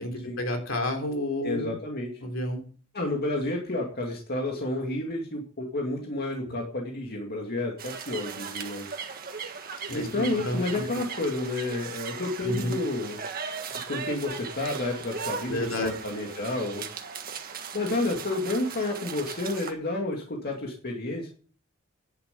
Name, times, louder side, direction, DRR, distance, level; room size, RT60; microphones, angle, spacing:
voice 1, 0.0-1.8 2.2-2.7 9.9-10.8 12.4-12.8 15.5-15.9, left 1 dB, 70° left, 4 dB, 3.3 m, -30 dB
voice 2, 1.4-2.2 2.9-8.9 9.9-13.2 13.9-16.9 17.7-21.3, left 2 dB, 50° left, 1 dB, 2.3 m, -30 dB
sound 1, 7.8-19.7, right 6 dB, 45° right, 1.6 m, -38 dB
11.0 x 7.2 x 8.3 m, 0.42 s
head